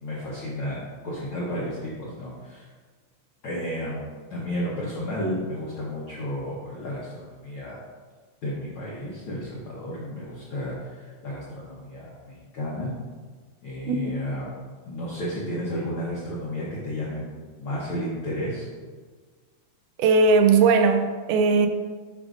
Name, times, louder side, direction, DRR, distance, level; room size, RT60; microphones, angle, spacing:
voice 1, 0.0-2.7 3.4-4.0 4.3-7.8 8.4-12.9 13.6-14.5 14.9-17.3 17.6-18.7, equal, 75° left, -6 dB, 1.2 m, -32 dB
voice 2, 13.9-14.2 20.0-21.7, right 4 dB, 80° right, 6 dB, 2.1 m, -19 dB
10.0 x 5.0 x 2.5 m, 1.5 s
omnidirectional pair, 3.9 m